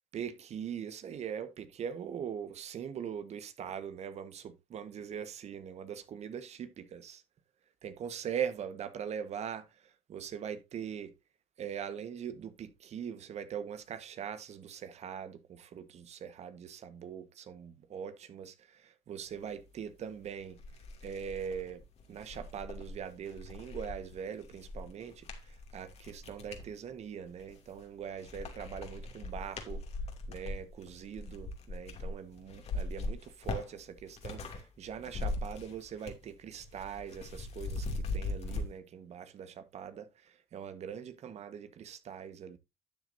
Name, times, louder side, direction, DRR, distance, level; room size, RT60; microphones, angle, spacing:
voice 1, 0.1-7.2 7.8-11.1 11.6-20.6 21.0-21.8 22.1-29.8 30.3-42.6, right 8 dB, 55° right, 1.4 m, -42 dB
sound 1, 20.0-20.1 20.5-26.7 27.3-27.9 28.2-34.6 34.9-36.3 36.5-38.7, left 2 dB, 55° left, 2.6 m, -40 dB
12.0 x 7.4 x 2.7 m
supercardioid pair, 65°, 13 cm